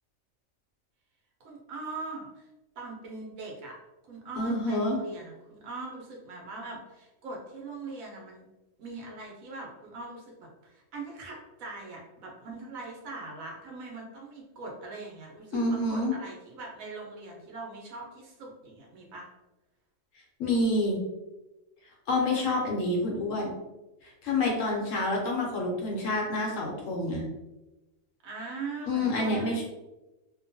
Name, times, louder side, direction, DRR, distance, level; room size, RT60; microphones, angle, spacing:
voice 1, 1.4-2.5 2.8-3.8 4.1-8.4 8.8-19.3 22.3-22.6 28.2-29.6, right 3 dB, 85° right, -2 dB, 1.2 m, -41 dB
voice 2, 4.4-5.0 15.5-16.1 20.4-21.0 22.1-23.5 24.0-27.2 28.9-29.6, left 2 dB, 70° left, -1 dB, 1.1 m, -28 dB
2.9 x 2.2 x 2.6 m, 1.0 s
omnidirectional pair, 1.4 m